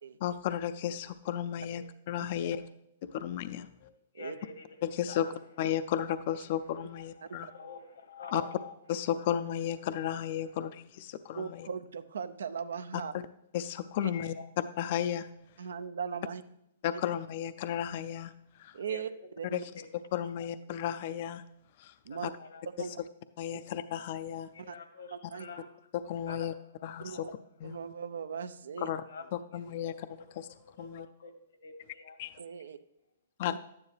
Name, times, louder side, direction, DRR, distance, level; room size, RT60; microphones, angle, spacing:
voice 1, 0.2-2.6 3.1-3.7 4.8-5.3 5.6-7.5 8.3-8.4 8.9-11.7 13.5-14.3 14.8-15.3 16.8-18.3 18.6-18.8 19.5-19.6 20.1-21.4 21.8-21.9 22.2-22.3 23.4-24.5 25.9-26.5 26.8-27.3 27.6-27.8 28.8-29.0 29.3-29.9 30.4-30.5 30.8-31.1 32.2-32.3 33.4-33.6, left 10 dB, 50° left, 12 dB, 0.4 m, -33 dB
voice 2, 3.8-4.6 5.1-5.3 6.9-8.7 9.2-9.3 13.9-14.5 18.8-19.1 19.8-19.9 20.4-20.5 21.1-21.2 22.1-22.6 24.5-25.7 26.3-26.5 27.1-27.2 29.1-29.2 29.5-29.7 30.6-32.2, left 5 dB, 85° left, 7 dB, 1.6 m, -47 dB
voice 3, 11.3-13.1 15.6-16.4 16.9-17.0 18.7-19.1 19.4-19.6 22.0-22.3 22.8-23.0 24.7-24.8 25.1-25.5 27.0-27.3 27.6-28.9 32.4-32.8 33.5-33.6, right 6 dB, 85° right, 13 dB, 0.6 m, -38 dB
11.5 x 9.7 x 3.3 m, 0.78 s
hypercardioid pair, 145°, 0 cm